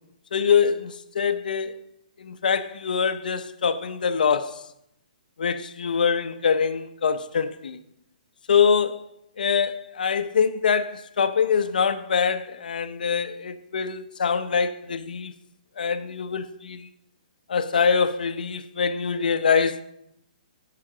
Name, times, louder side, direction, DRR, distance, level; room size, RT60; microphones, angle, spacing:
voice 1, 0.3-1.8 2.2-4.7 5.4-7.8 8.5-9.0 9.4-15.3 15.8-16.9 17.5-19.8, left 6 dB, 75° left, 0.9 m, -24 dB
16.0 x 5.9 x 5.0 m
hypercardioid pair, 170°, 5 cm